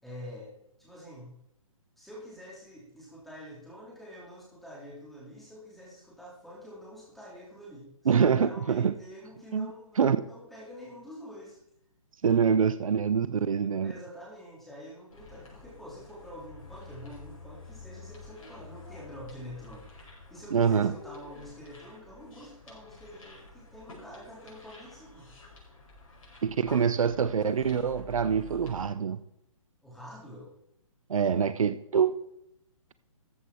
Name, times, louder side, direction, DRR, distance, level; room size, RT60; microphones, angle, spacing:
voice 1, 0.0-0.5 0.8-1.3 2.0-11.6 13.8-19.9 20.3-25.3 29.8-30.5, equal, ahead, 4.0 m, -47 dB
voice 2, 8.1-8.9 9.5-9.7 10.0-10.2 12.2-13.9 20.5-20.9 26.4-29.2 31.1-32.2, right 7 dB, 70° right, 0.8 m, -25 dB
sound 1, 15.1-28.8, left 3 dB, 70° left, 5.6 m, -50 dB
14.0 x 8.4 x 4.6 m
hypercardioid pair, 145°, 18 cm